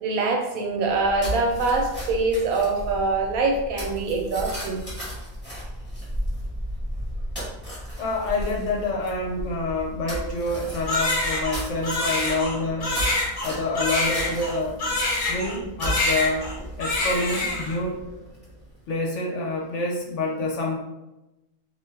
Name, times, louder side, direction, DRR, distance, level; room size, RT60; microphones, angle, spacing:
voice 1, 0.0-4.8, right 3 dB, 85° right, 1 dB, 1.1 m, -24 dB
sound 1, 0.8-18.8, equal, 10° left, 0.9 m, -35 dB
voice 2, 8.0-13.1 13.4-14.8 15.3-16.5 16.8-18.0 18.9-20.8, left 2 dB, 65° left, -1 dB, 0.9 m, -27 dB
Crying sobbing, 10.9-15.6 15.8-16.5 16.8-17.8, left 2 dB, 40° left, 0.6 m, -26 dB
2.5 x 2.2 x 3.2 m, 0.97 s
omnidirectional pair, 1.4 m